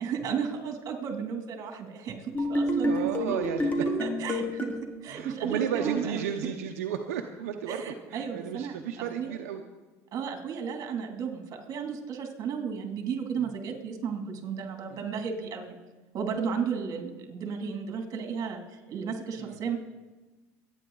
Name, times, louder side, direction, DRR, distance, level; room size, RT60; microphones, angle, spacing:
voice 1, 0.0-2.9 3.2-3.4 3.8-4.7 5.0-6.3 7.7-9.3 10.1-11.4 11.7-15.8 16.1-19.8, right 6 dB, 45° right, 3 dB, 2.7 m, -34 dB
sound 1, 2.3-4.8, equal, 20° left, 2.2 m, -28 dB
voice 2, 2.8-3.8 5.1-7.8 8.1-9.6 13.3-13.5 14.9-15.0 19.4-19.6, right 8 dB, 90° right, 4 dB, 0.8 m, -33 dB
23.5 x 9.4 x 3.9 m, 1.2 s
supercardioid pair, 100°, 8 cm